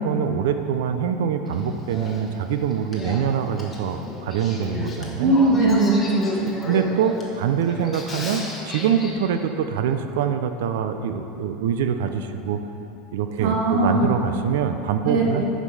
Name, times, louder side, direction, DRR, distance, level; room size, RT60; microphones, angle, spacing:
voice 1, 0.0-5.4 6.6-12.6 13.1-15.4, right 7 dB, 85° right, 8 dB, 0.6 m, -24 dB
Male speech man speaking / Female speech woman speaking / Conversation, 1.5-9.1, left 2 dB, 15° left, 1.0 m, -35 dB
voice 2, 5.2-6.5 13.4-14.1 15.0-15.4, right 2 dB, 50° right, 0 dB, 1.3 m, -20 dB
9.9 x 5.2 x 5.5 m, 2.9 s
supercardioid pair, 170°, 0 cm